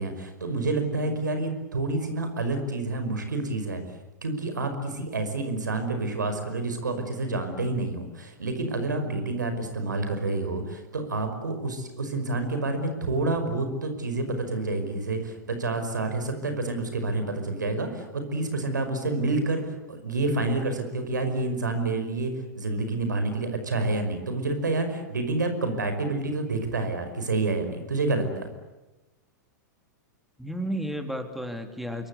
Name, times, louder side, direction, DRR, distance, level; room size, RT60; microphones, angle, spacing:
voice 1, 0.0-3.8 4.2-19.6 19.9-28.5, right 2 dB, 90° right, 7 dB, 5.5 m, -28 dB
voice 2, 30.4-32.1, equal, ahead, 6 dB, 3.1 m, -33 dB
27.0 x 23.0 x 8.3 m, 1.1 s
hypercardioid pair, 105°, 10 cm